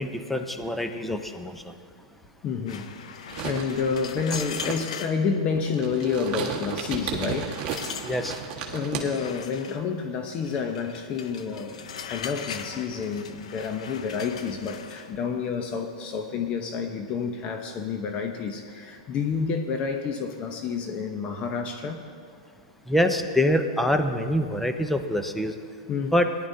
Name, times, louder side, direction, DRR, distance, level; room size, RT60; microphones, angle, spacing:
voice 1, 0.0-1.7 8.0-8.4 22.9-25.5 26.1-26.3, left 1 dB, 5° left, 7 dB, 0.7 m, -25 dB
voice 2, 2.4-7.6 8.7-22.0 25.9-26.2, left 5 dB, 35° left, 5 dB, 0.9 m, -29 dB
sound 1, 2.7-5.2 6.0-6.3 6.7-6.8 7.2-8.5 9.1-9.8 10.4-15.1, left 7 dB, 75° left, 0.7 m, -39 dB
sound 2, 3.3-9.1, right 7 dB, 35° right, 1.6 m, -34 dB
18.5 x 11.0 x 2.8 m, 2.2 s
hypercardioid pair, 125°, 4 cm